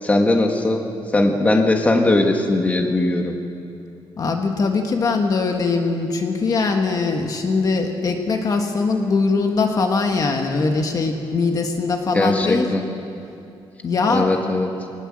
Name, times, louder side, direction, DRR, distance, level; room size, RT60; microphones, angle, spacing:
voice 1, 0.0-0.9 1.1-3.4 12.1-12.9 14.1-14.7, left 2 dB, 15° left, 3 dB, 1.6 m, -19 dB
voice 2, 4.2-12.7 13.8-14.3, left 4 dB, 40° left, 4 dB, 1.4 m, -21 dB
20.5 x 19.5 x 7.5 m, 2.5 s
wide cardioid pair, 175°, 9 cm